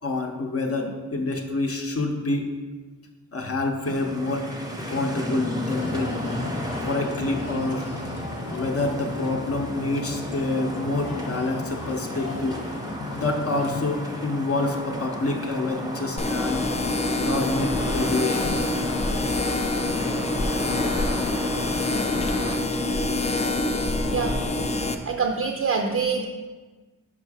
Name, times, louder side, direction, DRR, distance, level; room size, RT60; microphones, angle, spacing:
voice 1, 0.0-2.5 3.3-4.5 4.9-6.1 6.8-7.9 8.5-12.6 13.1-16.7 17.2-18.6, left 2 dB, 45° left, 3 dB, 0.8 m, -27 dB
sound 1, 3.8-22.6, equal, 10° right, 0.7 m, -33 dB
sound 2, 5.8-13.8, left 3 dB, 80° left, 0.8 m, -38 dB
sound 3, 16.2-25.0, left 2 dB, 20° left, 0.4 m, -26 dB
voice 2, 25.1-26.3, right 5 dB, 45° right, 3 dB, 0.5 m, -25 dB
5.5 x 5.1 x 4.8 m, 1.3 s
wide cardioid pair, 150°, 32 cm